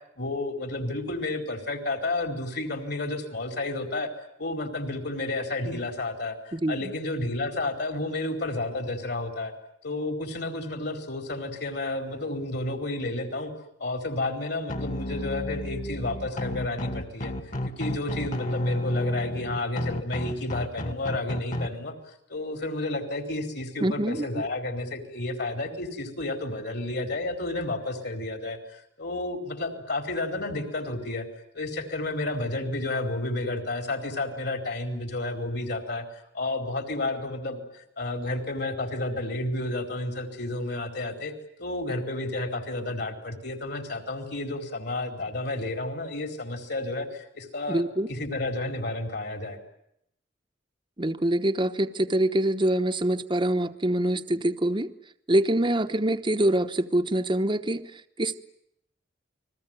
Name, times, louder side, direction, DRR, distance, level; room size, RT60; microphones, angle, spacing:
voice 1, 0.2-4.1 4.4-9.5 9.8-13.5 13.8-17.3 17.8-21.9 22.3-31.3 31.5-36.0 36.3-41.3 41.6-47.8 48.1-49.6, left 2 dB, 60° left, 6 dB, 4.8 m, -31 dB
voice 2, 6.5-6.9 23.8-24.3 47.7-48.1 51.0-54.9 55.3-58.4, right 1 dB, 25° right, 8 dB, 1.0 m, -25 dB
sound 1, 14.7-21.7, left 1 dB, 45° left, 2.2 m, -32 dB
29.5 x 21.5 x 9.2 m, 0.76 s
head